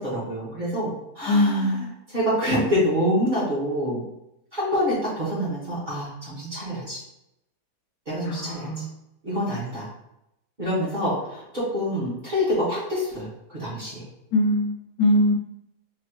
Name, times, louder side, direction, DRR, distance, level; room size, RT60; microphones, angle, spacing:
voice 1, 0.0-4.0 4.5-7.0 8.0-8.8 9.2-9.9 10.6-14.0, equal, 30° right, -9 dB, 1.6 m, -26 dB
voice 2, 1.3-1.8 8.3-8.8 14.3-15.3, left 1 dB, 85° left, 4 dB, 1.2 m, -22 dB
4.2 x 2.9 x 3.0 m, 0.84 s
omnidirectional pair, 1.8 m